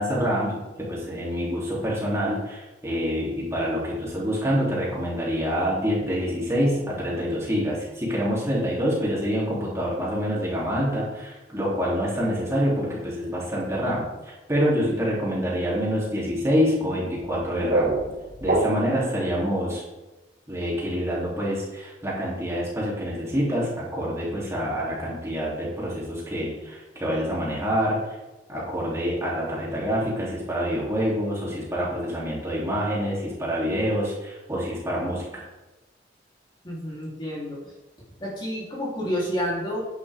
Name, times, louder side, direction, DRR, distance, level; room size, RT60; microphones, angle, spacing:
voice 1, 0.0-17.9 18.4-19.8 20.5-28.0 28.5-35.4, equal, 15° right, -6 dB, 3.2 m, -26 dB
sound 1, 17.2-19.1, right 2 dB, 50° right, 2.0 m, -26 dB
voice 2, 36.6-37.7 38.2-39.8, equal, 25° left, -5 dB, 3.5 m, -29 dB
10.5 x 10.5 x 3.6 m, 1.1 s
head